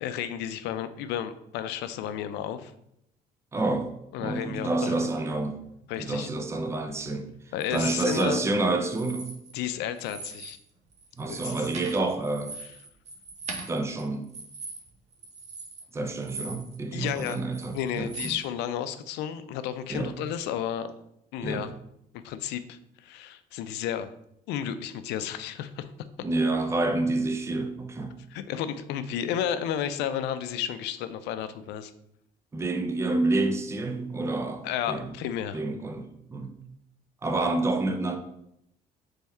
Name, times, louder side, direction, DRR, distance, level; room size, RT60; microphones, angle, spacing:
voice 1, 0.0-2.7 4.1-5.1 5.9-6.3 7.5-8.4 9.5-10.6 11.3-11.6 16.9-17.4 17.7-20.9 21.3-21.7 22.1-24.1 24.5-25.9 28.3-31.9 34.6-35.6, left 9 dB, 85° left, 0.4 m, -32 dB
voice 2, 3.5-3.9 4.2-5.6 6.0-7.3 7.7-9.3 11.2-12.5 13.7-14.3 15.9-18.3 19.9-20.1 21.4-21.6 26.2-28.2 32.5-35.1 35.5-36.5 37.2-38.2, right 2 dB, 15° right, 0.5 m, -28 dB
sound 1, 7.6-8.2 8.9-9.7 10.0-10.6 10.9-16.8 17.1-18.4, right 3 dB, 40° right, 0.8 m, -41 dB
3.5 x 3.5 x 4.2 m
cardioid pair, 110°, 17 cm